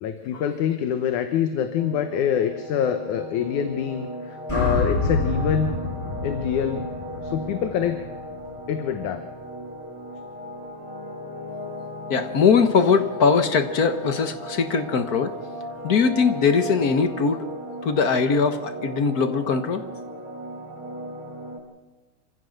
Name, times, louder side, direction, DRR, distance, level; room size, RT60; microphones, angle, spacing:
voice 1, 0.0-5.7 6.2-6.9 7.2-8.0 8.7-9.2, left 9 dB, 85° left, 7 dB, 2.5 m, -25 dB
sound 1, 1.8-21.6, equal, 45° right, 3.7 m, -36 dB
sound 2, 4.5-8.7, left 2 dB, 10° left, 6.8 m, -28 dB
voice 2, 12.1-15.3 15.8-17.4 17.8-19.8, left 5 dB, 55° left, 8 dB, 1.1 m, -21 dB
27.0 x 15.5 x 6.6 m, 1.2 s
omnidirectional pair, 3.4 m